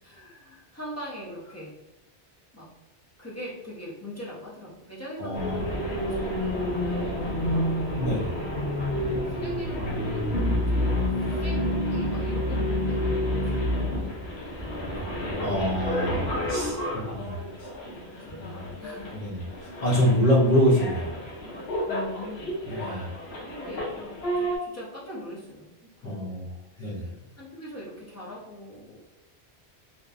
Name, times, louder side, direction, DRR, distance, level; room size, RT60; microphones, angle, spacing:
voice 1, 0.0-1.7 2.5-2.7 3.2-7.7 8.9-15.1 17.4-17.6 17.8-19.2 21.9-22.6 23.4-26.4 26.7-29.0, equal, 25° left, -6 dB, 0.3 m, -42 dB
voice 2, 5.2-5.6 8.0-8.3 15.4-17.7 18.3-18.6 19.1-21.2 22.6-23.1 26.0-26.5 26.8-27.1, equal, 45° left, -6 dB, 0.8 m, -26 dB
sound 1, 5.3-24.6, left 1 dB, 75° left, 0.9 m, -29 dB
2.8 x 2.2 x 2.4 m, 0.91 s
omnidirectional pair, 1.1 m